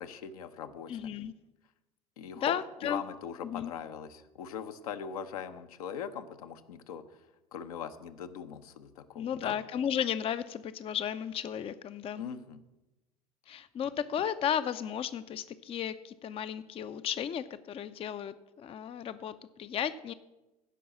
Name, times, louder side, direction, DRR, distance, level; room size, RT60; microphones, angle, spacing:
voice 1, 0.0-0.9 2.2-2.6 2.8-7.2 7.5-9.6 12.2-12.6, left 8 dB, 70° left, 8 dB, 0.8 m, -40 dB
voice 2, 0.9-1.3 2.3-3.0 3.4-3.7 9.2-12.2 13.5-20.1, left 9 dB, 30° left, 13 dB, 0.5 m, -34 dB
15.5 x 5.4 x 5.9 m, 1.0 s
figure-of-eight pair, 65°, 19 cm